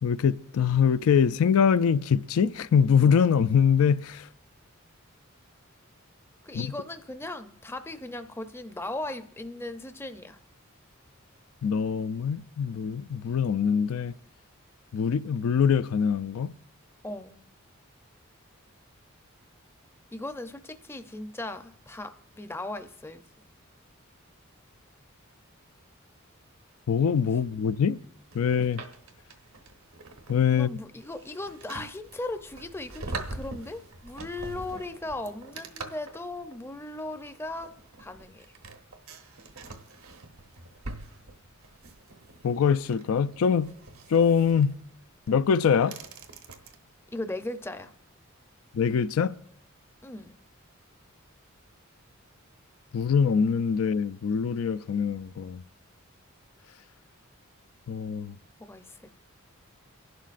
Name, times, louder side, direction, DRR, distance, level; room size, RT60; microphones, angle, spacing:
voice 1, 0.0-4.3 6.5-6.7 11.6-14.1 14.9-16.5 26.9-28.0 28.3-28.8 30.3-30.7 42.4-43.7 44.1-44.8 45.3-46.0 48.7-49.3 52.9-55.6 57.9-58.4, left 7 dB, 85° left, 0.4 m, -23 dB
voice 2, 6.4-10.4 17.0-17.4 20.1-23.2 30.5-38.5 47.1-47.9 50.0-50.4 58.6-59.2, left 2 dB, 10° left, 0.5 m, -38 dB
sound 1, 28.3-46.8, right 3 dB, 80° right, 1.1 m, -44 dB
28.5 x 11.5 x 2.5 m
head